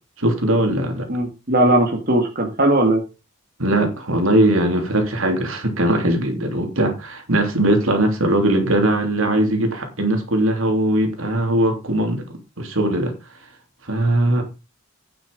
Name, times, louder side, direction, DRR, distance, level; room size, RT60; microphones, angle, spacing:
voice 1, 0.2-1.1 3.6-12.2 12.6-13.1 13.8-14.4, right 1 dB, 70° right, 3.1 m, -20 dB
voice 2, 1.1-3.0, right 1 dB, 40° right, 2.1 m, -18 dB
9.9 x 6.9 x 5.3 m
head